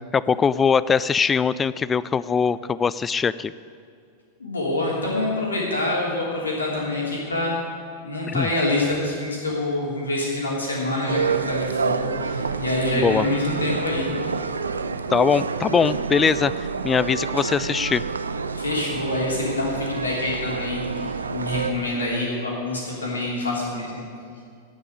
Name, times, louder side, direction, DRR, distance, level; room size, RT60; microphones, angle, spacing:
voice 1, 0.1-3.5 8.3-8.5 12.9-13.3 15.1-16.5 16.8-18.0, left 6 dB, 20° left, 17 dB, 0.3 m, -21 dB
voice 2, 4.4-7.6 8.0-14.1 18.6-24.0, left 2 dB, 75° left, -3 dB, 3.1 m, -26 dB
sound 1, 11.1-21.7, right 5 dB, 75° right, 0.5 m, -28 dB
8.8 x 8.4 x 9.4 m, 2.3 s
figure-of-eight pair, 90°, 0 cm